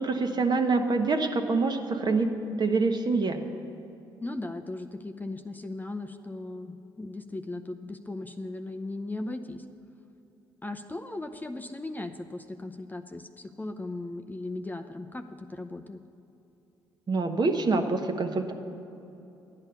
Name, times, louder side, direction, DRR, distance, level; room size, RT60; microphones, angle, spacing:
voice 1, 0.0-3.4 17.1-18.5, right 3 dB, 40° right, 5 dB, 1.2 m, -26 dB
voice 2, 4.2-9.6 10.6-16.0, left 2 dB, 15° left, 6 dB, 0.6 m, -37 dB
11.5 x 8.9 x 6.8 m, 2.9 s
hypercardioid pair, 50°, 11 cm